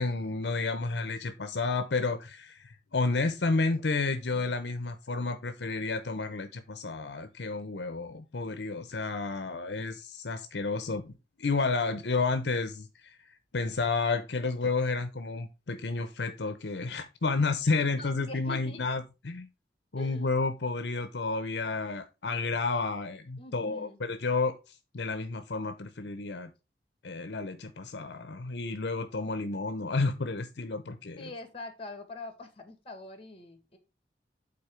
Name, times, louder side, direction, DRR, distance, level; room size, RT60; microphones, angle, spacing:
voice 1, 0.0-13.2 13.5-19.5 19.9-24.6 24.9-26.5 27.0-31.3, left 3 dB, 70° left, 0.8 m, -31 dB
voice 2, 18.0-18.8 20.0-20.3 23.4-24.0 31.2-33.8, left 2 dB, 30° left, 1.7 m, -44 dB
8.6 x 4.0 x 5.1 m
head